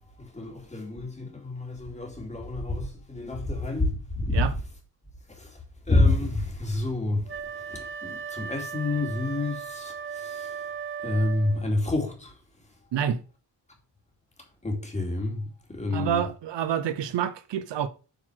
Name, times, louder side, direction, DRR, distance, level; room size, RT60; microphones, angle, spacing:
voice 1, 0.2-4.5 5.3-10.7 11.0-12.4 14.6-16.2, left 2 dB, 15° left, 2.5 m, -28 dB
Wind instrument woodwind instrument, 7.3-11.7, right 7 dB, 30° right, 1.0 m, -37 dB
voice 2, 15.9-17.9, right 9 dB, 75° right, 0.9 m, -27 dB
8.1 x 4.8 x 6.2 m
wide cardioid pair, 140°, 43 cm